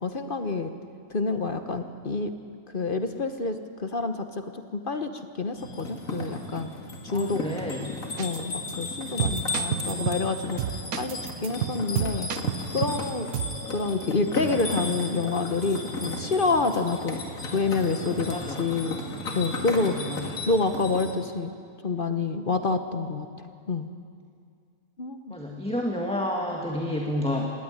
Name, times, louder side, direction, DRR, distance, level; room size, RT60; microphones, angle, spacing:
voice 1, 0.0-0.7 1.1-2.3 2.7-6.7 7.0-7.4 8.2-12.3 12.7-13.3 13.7-17.2 17.5-19.0 19.3-20.0 20.5-21.5 21.8-23.9 25.0-25.3, left 3 dB, 40° left, 8 dB, 1.0 m, -28 dB
sound 1, 5.6-21.1, left 2 dB, 60° left, 2.6 m, -34 dB
voice 2, 7.1-7.9 9.4-10.1 18.3-18.6 19.8-20.2 25.3-27.5, left 1 dB, 5° left, 0 dB, 1.6 m, -31 dB
sound 2, 8.2-8.4 8.7-8.8 9.2-10.3 10.6-13.0 13.3-13.6, right 10 dB, 80° right, 1.3 m, -30 dB
18.5 x 17.0 x 10.0 m, 2.2 s
omnidirectional pair, 1.6 m